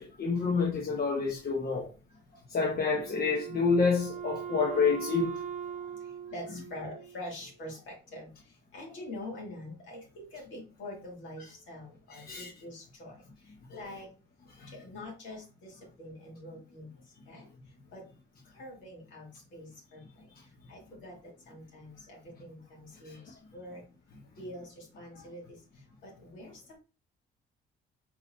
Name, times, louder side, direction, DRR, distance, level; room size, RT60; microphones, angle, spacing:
voice 1, 0.0-1.9 2.5-5.4 12.1-12.5 13.7-13.8 14.6-14.7 23.0-23.2, left 4 dB, 50° left, 1.1 m, -28 dB
Wind instrument woodwind instrument, 2.9-7.4, right 8 dB, 40° right, 0.9 m, -40 dB
voice 2, 6.3-8.3 8.7-13.1 13.7-14.1 14.8-15.7 16.0-16.9 17.3-17.5 17.9-18.0 18.5-20.0 20.7-21.1 21.5-23.2 23.5-23.8 24.4-25.4 26.0-26.5, left 1 dB, 75° left, 2.6 m, -44 dB
4.4 x 4.1 x 2.8 m
cardioid pair, 90°, 20 cm